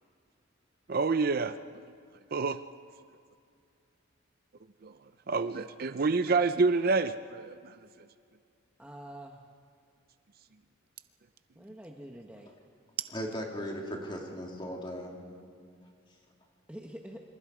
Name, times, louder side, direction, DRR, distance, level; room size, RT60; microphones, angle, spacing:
voice 1, 0.9-1.5 2.3-2.6 4.8-4.9 5.3-7.7, right 4 dB, 45° right, 11 dB, 0.5 m, -27 dB
voice 2, 8.8-9.4 11.6-12.5 16.7-17.2, right 1 dB, 5° right, 1 dB, 1.1 m, -45 dB
voice 3, 13.1-15.2, equal, 25° left, -1 dB, 3.3 m, -37 dB
27.0 x 26.0 x 4.9 m, 2.2 s
head